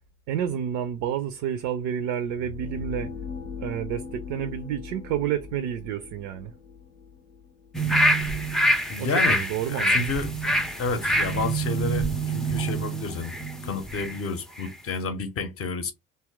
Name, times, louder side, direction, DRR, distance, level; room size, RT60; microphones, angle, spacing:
voice 1, 0.3-3.1 3.6-6.5 9.0-10.1, right 9 dB, 55° right, 0.5 m, -30 dB
sound 1, 2.2-8.1, left 6 dB, 70° left, 0.6 m, -40 dB
sound 2, 7.7-14.2 14.6-14.7, right 1 dB, ahead, 0.4 m, -25 dB
voice 2, 8.9-10.4 10.7-13.4 13.6-15.9, left 3 dB, 35° left, 0.7 m, -30 dB
2.8 x 2.1 x 3.3 m
figure-of-eight pair, 45°, 41 cm